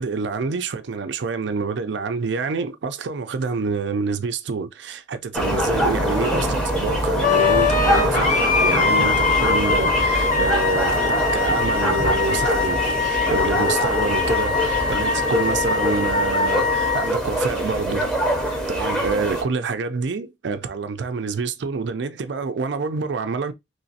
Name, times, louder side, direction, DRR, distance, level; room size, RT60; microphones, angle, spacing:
voice 1, 0.0-18.1 18.7-23.5, right 4 dB, 70° right, 0.4 m, -27 dB
sound 1, 5.3-19.4, equal, 5° left, 0.8 m, -24 dB
Wind instrument woodwind instrument, 7.2-17.1, left 5 dB, 45° left, 0.5 m, -22 dB
3.0 x 3.0 x 2.8 m
head